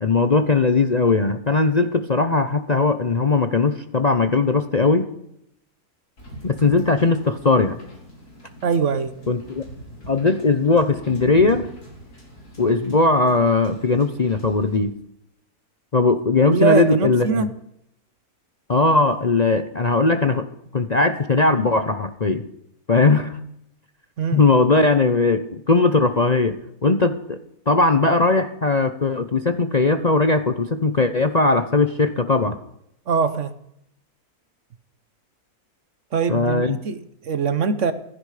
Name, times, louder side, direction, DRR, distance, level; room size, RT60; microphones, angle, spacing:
voice 1, 0.0-5.1 6.4-7.8 9.3-9.6 10.1-11.7 12.6-14.9 15.9-17.5 18.7-20.5 20.7-22.4 22.9-23.4 24.3-26.6 26.8-27.4 27.7-32.6 36.3-36.8, left 3 dB, 35° left, 9 dB, 0.7 m, -19 dB
Wind / Boat Water vehicle, 6.2-14.8, right 1 dB, 85° left, 5.2 m, -41 dB
voice 2, 8.6-9.1 16.5-17.5 24.2-24.5 33.1-33.5 36.1-37.9, right 5 dB, 55° right, 13 dB, 1.3 m, -22 dB
16.0 x 14.5 x 4.9 m, 0.76 s
omnidirectional pair, 1.6 m